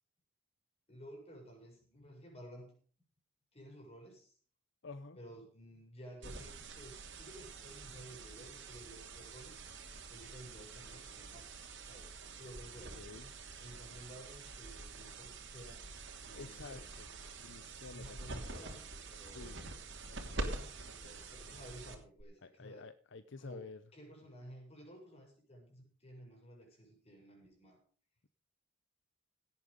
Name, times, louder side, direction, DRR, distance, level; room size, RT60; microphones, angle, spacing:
voice 1, 0.9-2.8 3.5-4.4 5.2-9.6 10.1-11.5 11.9-13.1 13.6-15.9 16.2-17.0 17.9-19.6 21.0-22.9 23.4-27.8, equal, 30° left, 1 dB, 6.9 m, -54 dB
voice 2, 4.8-5.2 13.0-13.3 16.3-17.1 17.4-18.2 19.3-19.6 22.4-23.8, left 4 dB, 60° left, 12 dB, 0.7 m, -50 dB
sound 1, 6.2-22.2, right 3 dB, 60° right, 3.0 m, -46 dB
17.5 x 8.9 x 5.3 m, 0.41 s
head